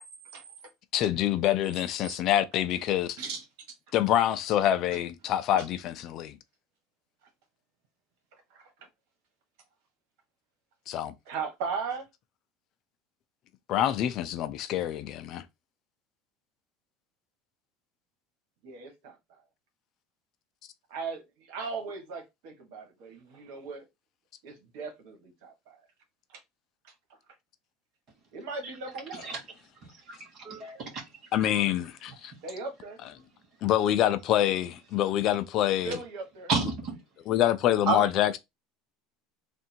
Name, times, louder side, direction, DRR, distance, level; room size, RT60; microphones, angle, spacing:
voice 1, 0.9-3.2 3.9-6.4 10.9-11.1 13.7-15.4 31.3-32.3 33.6-36.0 37.3-38.4, left 12 dB, 45° left, 0.5 m, -26 dB
voice 2, 11.2-12.1 18.6-19.4 20.9-23.9 24.4-25.8 26.3-26.4 26.8-26.9 28.3-29.3 32.4-33.0 35.8-36.5, right 4 dB, 75° right, 1.5 m, -38 dB
voice 3, 30.1-31.0 36.5-37.0 37.9-38.1, right 4 dB, 40° right, 1.5 m, -30 dB
3.6 x 2.6 x 4.4 m
cardioid pair, 155°, 0 cm